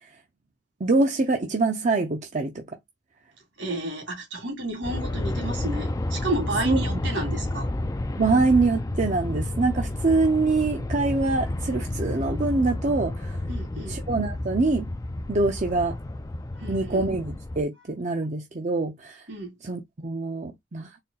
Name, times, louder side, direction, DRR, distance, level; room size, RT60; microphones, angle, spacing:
voice 1, 0.8-2.6 6.6-7.0 8.2-13.4 13.9-14.9 15.3-16.0 16.7-19.2 19.6-20.9, right 3 dB, 40° right, 0.6 m, -24 dB
voice 2, 3.6-7.7 13.5-14.0 16.5-17.1 19.3-19.5, right 2 dB, 75° right, 2.3 m, -31 dB
Aircraft, 4.8-17.6, left 1 dB, 20° left, 0.4 m, -30 dB
4.2 x 2.1 x 3.8 m
head